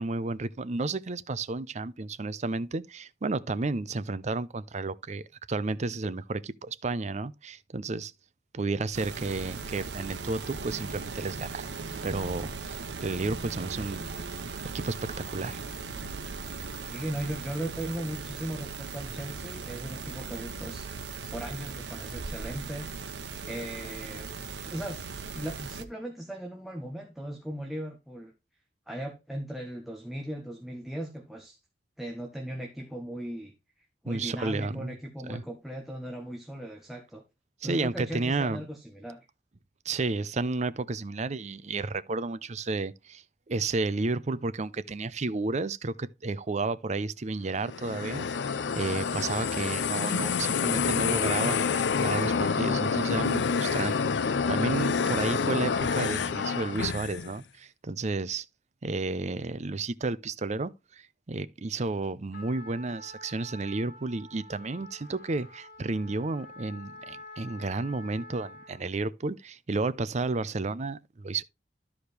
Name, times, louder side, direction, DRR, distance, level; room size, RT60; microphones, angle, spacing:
voice 1, 0.0-8.1 8.5-11.7 12.0-14.0 14.6-15.6 34.1-34.9 35.2-35.4 37.6-38.6 39.8-58.4 58.8-71.4, right 3 dB, 40° right, 0.6 m, -32 dB
sound 1, 8.9-25.8, right 4 dB, 85° right, 1.1 m, -38 dB
voice 2, 16.9-20.9 21.3-22.9 23.4-24.3 24.7-28.3 28.9-31.6 32.0-33.5 34.0-37.2 37.6-39.2, right 1 dB, ahead, 1.4 m, -38 dB
sound 2, 47.6-57.3, left 5 dB, 85° left, 0.5 m, -28 dB
Trumpet, 62.3-68.9, left 2 dB, 65° left, 2.6 m, -48 dB
13.0 x 5.0 x 3.3 m
head